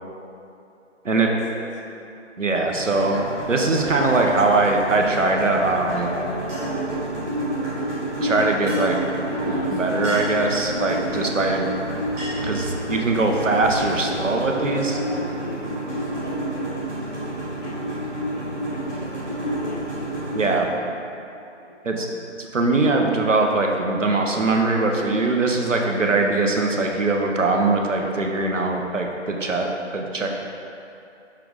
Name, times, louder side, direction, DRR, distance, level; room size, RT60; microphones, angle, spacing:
voice 1, 1.1-2.0 13.9-19.8 21.6-22.0, equal, 65° left, -2 dB, 1.3 m, -40 dB
voice 2, 2.4-3.2 3.5-6.1 8.2-9.0 9.5-11.7 12.4-15.0 20.3-20.7 21.8-22.1 22.4-30.3, right 3 dB, 80° right, 2 dB, 0.9 m, -21 dB
sound 1, 2.7-20.6, right 1 dB, 10° right, 1.0 m, -29 dB
sound 2, 9.4-15.2, right 1 dB, 15° left, 0.6 m, -41 dB
6.2 x 4.6 x 3.8 m, 2.7 s
figure-of-eight pair, 145°, 37 cm